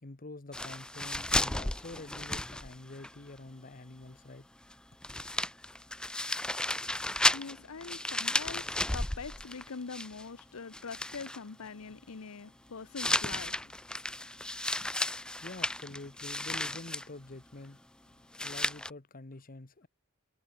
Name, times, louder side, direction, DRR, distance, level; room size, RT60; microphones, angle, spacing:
voice 1, 0.0-4.5 15.4-17.8 18.4-19.9, left 2 dB, 40° left, 1.2 m, -47 dB
sound 1, 0.5-3.1 3.4-3.5 4.7-4.8 5.0-10.4 10.7-11.4 13.0-17.1 18.3-18.9, left 1 dB, 5° left, 0.3 m, -33 dB
voice 2, 7.3-13.7, left 5 dB, 85° left, 0.8 m, -43 dB
head